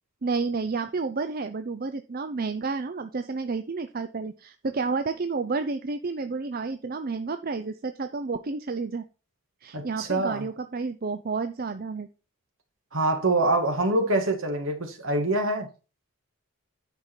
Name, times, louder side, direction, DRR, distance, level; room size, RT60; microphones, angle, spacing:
voice 1, 0.2-9.1 9.6-12.1, right 4 dB, 40° right, 0.5 m, -30 dB
voice 2, 9.7-10.5 12.9-15.7, right 2 dB, 65° right, 1.9 m, -25 dB
9.7 x 5.4 x 4.5 m
head